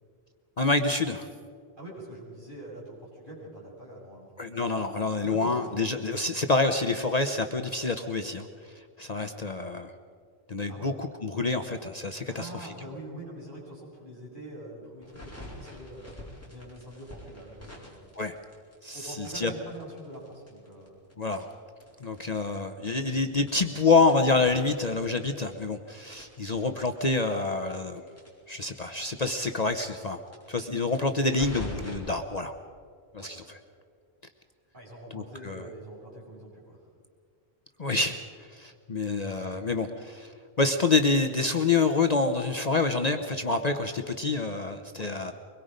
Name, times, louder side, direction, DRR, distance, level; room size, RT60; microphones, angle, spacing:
voice 1, 0.6-1.3 4.4-8.5 9.0-9.9 10.5-12.7 18.2-18.3 18.8-19.5 21.2-21.5 22.0-28.0 28.5-30.2 30.5-32.5 33.1-33.4 35.1-35.6 37.8-38.2 38.5-40.3 40.6-45.3, left 3 dB, 40° left, 6 dB, 0.9 m, -27 dB
voice 2, 1.8-4.3 5.2-5.7 10.7-10.9 12.3-18.0 18.9-21.0 33.2-33.3 34.7-36.8 39.2-39.9 44.9-45.1, right 1 dB, 50° right, -6 dB, 7.4 m, -44 dB
sound 1, 15.0-18.9 19.2-22.2 22.5-22.6 22.9-23.0 23.4-25.8 26.1-29.1 29.4-29.5 29.7-29.8 30.2-31.9, left 1 dB, 15° left, 4.7 m, -45 dB
24.0 x 21.5 x 5.2 m, 2.2 s
omnidirectional pair, 1.1 m